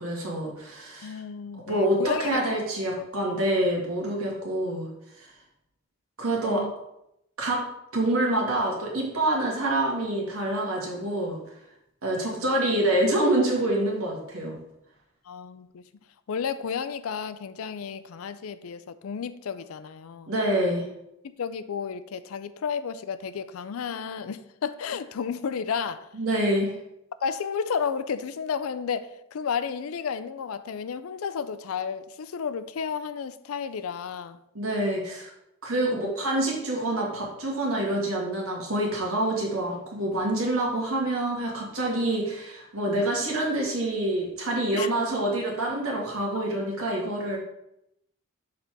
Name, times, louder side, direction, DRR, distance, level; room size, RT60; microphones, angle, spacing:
voice 1, 0.0-1.1 1.7-4.9 5.1-5.3 6.2-6.7 7.4-7.6 7.9-11.4 12.0-14.6 20.3-20.9 26.1-26.7 34.5-35.3 35.6-47.4, right 1 dB, 85° right, -2 dB, 1.9 m, -26 dB
voice 2, 1.0-2.6 3.0-3.1 6.5-6.7 12.1-12.5 15.3-15.8 16.3-20.3 21.2-26.1 27.2-34.4 35.7-36.1 44.7-44.9, left 6 dB, 85° left, 13 dB, 0.4 m, -32 dB
6.6 x 4.1 x 4.5 m, 0.82 s
head